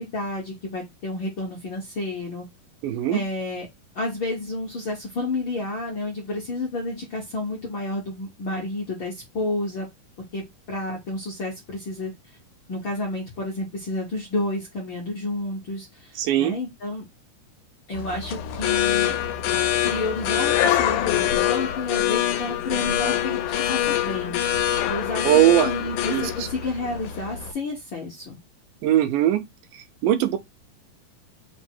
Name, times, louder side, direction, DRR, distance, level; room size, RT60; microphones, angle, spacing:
voice 1, 0.0-2.4 3.1-3.7 3.9-9.9 10.3-12.1 12.7-17.0 17.9-19.1 19.8-28.4, left 2 dB, 60° left, 1.2 m, -30 dB
voice 2, 2.8-3.2 16.2-16.6 25.2-25.7 26.1-26.3 28.8-29.4 30.0-30.4, right 12 dB, 85° right, 2.3 m, -19 dB
sound 1, 17.9-27.5, left 11 dB, 85° left, 2.1 m, -24 dB
5.1 x 2.0 x 4.3 m
omnidirectional pair, 3.7 m